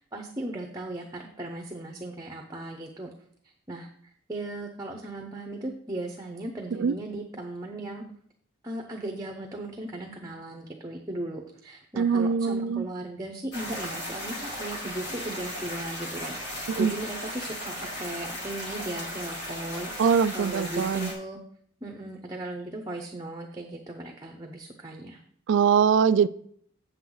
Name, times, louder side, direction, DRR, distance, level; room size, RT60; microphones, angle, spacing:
voice 1, 0.0-3.1 3.4-8.0 8.6-21.4 21.8-25.2, right 1 dB, 15° right, 0.7 m, -37 dB
voice 2, 12.0-12.9 16.8-16.9 20.0-21.1 25.5-26.3, right 6 dB, 60° right, 0.3 m, -22 dB
sound 1, 13.5-21.1, left 1 dB, 55° left, 2.4 m, -36 dB
7.9 x 7.6 x 3.9 m
head